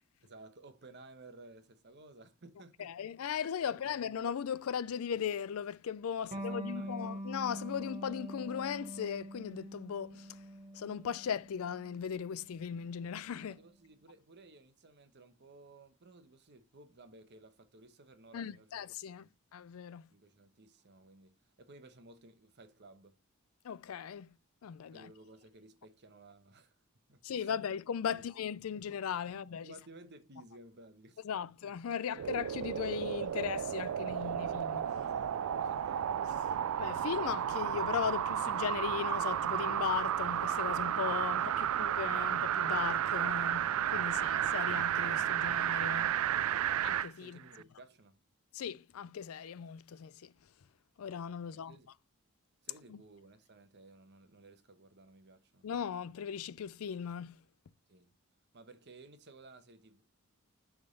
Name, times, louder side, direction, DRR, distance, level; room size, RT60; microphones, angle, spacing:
voice 1, 0.2-2.9 3.7-4.0 6.2-7.1 13.4-19.3 20.1-23.2 24.9-26.8 27.1-27.7 28.1-28.3 28.7-28.8 29.2-31.5 35.0-36.2 47.2-48.2 51.4-51.9 52.6-55.7 57.9-58.2 58.5-60.0, right 2 dB, 55° right, 1.0 m, -57 dB
voice 2, 2.8-10.4 10.7-13.6 18.3-20.1 23.6-24.3 24.6-25.1 27.2-29.7 31.2-35.0 36.8-46.2 46.8-47.4 48.5-50.3 51.0-51.8 52.9-53.0 55.6-57.4, left 7 dB, 75° left, 0.4 m, -38 dB
Electric guitar, 6.3-13.5, right 1 dB, 35° right, 1.4 m, -44 dB
sound 1, 32.1-47.1 47.6-47.7, right 10 dB, 80° right, 0.3 m, -32 dB
6.8 x 3.6 x 5.2 m
head